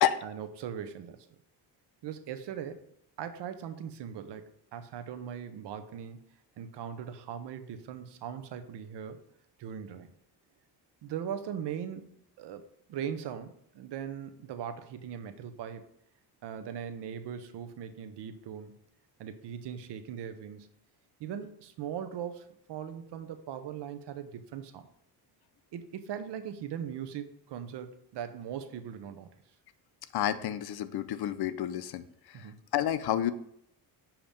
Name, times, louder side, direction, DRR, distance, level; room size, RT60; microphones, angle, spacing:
voice 1, 0.2-1.2 2.0-2.8 3.2-6.2 6.6-9.2 9.6-10.1 11.0-15.8 16.4-18.8 19.2-20.7 21.2-24.9 25.7-29.3 32.3-32.7, right 8 dB, 70° right, 9 dB, 0.8 m, -40 dB
voice 2, 30.1-32.5 32.7-33.3, left 11 dB, 60° left, 13 dB, 0.6 m, -30 dB
7.2 x 2.9 x 5.0 m, 0.72 s
cardioid pair, 100°, 42 cm